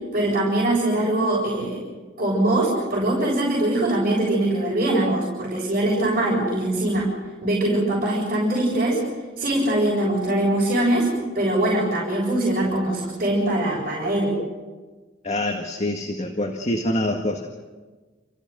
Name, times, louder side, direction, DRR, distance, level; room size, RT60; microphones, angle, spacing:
voice 1, 0.1-1.8 2.2-7.1 7.4-9.0 9.4-11.1 11.3-14.4, right 1 dB, 50° right, -5 dB, 7.3 m, -22 dB
voice 2, 15.2-17.5, left 1 dB, 40° left, 2 dB, 1.9 m, -25 dB
30.0 x 15.5 x 7.8 m, 1.3 s
head